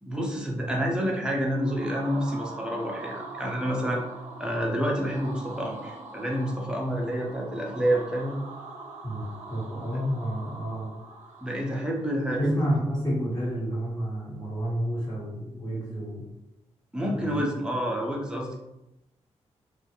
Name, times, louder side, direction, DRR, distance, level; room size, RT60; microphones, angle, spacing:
voice 1, 0.0-4.0 4.4-8.4 11.4-12.6 16.9-18.5, equal, 5° right, -1 dB, 0.6 m, -28 dB
sound 1, 1.3-12.2, right 3 dB, 85° right, 0.4 m, -43 dB
voice 2, 9.0-10.9 12.4-16.3 17.0-17.4, equal, 35° left, -6 dB, 1.2 m, -30 dB
2.3 x 2.1 x 2.9 m, 0.90 s
cardioid pair, 80°, 12 cm